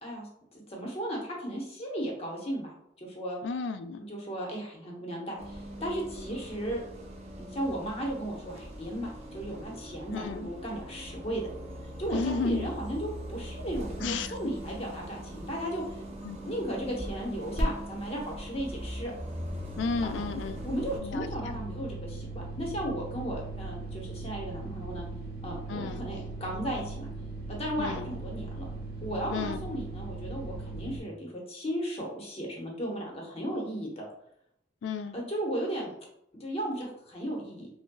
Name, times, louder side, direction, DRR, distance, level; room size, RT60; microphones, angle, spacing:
voice 1, 0.0-3.4 4.0-6.8 7.4-11.5 12.0-15.8 16.4-19.1 20.0-20.2 20.6-25.0 25.4-27.1 27.5-28.7 29.0-34.0 35.1-35.9 36.4-37.7, right 1 dB, 35° left, -1 dB, 0.9 m, -35 dB
voice 2, 3.4-4.0 10.1-10.5 12.1-12.7 14.0-14.3 16.2-16.6 19.8-20.6 21.0-21.3 25.7-26.0 27.8-28.1 29.3-29.6 34.8-35.2, left 4 dB, 65° left, 9 dB, 0.3 m, -32 dB
Bus, 5.4-21.0, equal, 35° right, 0.5 m, -42 dB
sound 1, 17.6-17.7 17.9-31.0, right 2 dB, 50° right, 1.0 m, -38 dB
5.4 x 2.2 x 2.2 m, 0.73 s
head